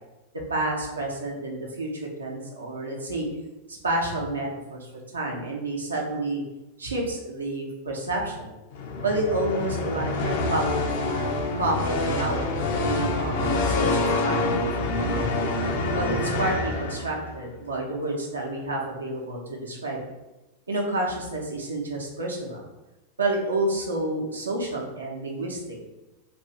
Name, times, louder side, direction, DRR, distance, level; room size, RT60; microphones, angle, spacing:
voice 1, 0.5-3.3 3.7-6.4 6.8-8.5 9.0-15.3 15.9-20.0 20.7-22.6 23.2-25.8, right 2 dB, 75° right, -1 dB, 0.7 m, -29 dB
sound 1, 8.7-17.4, left 2 dB, 50° left, 0.4 m, -26 dB
2.5 x 2.5 x 3.5 m, 1.0 s
figure-of-eight pair, 90°, 0 cm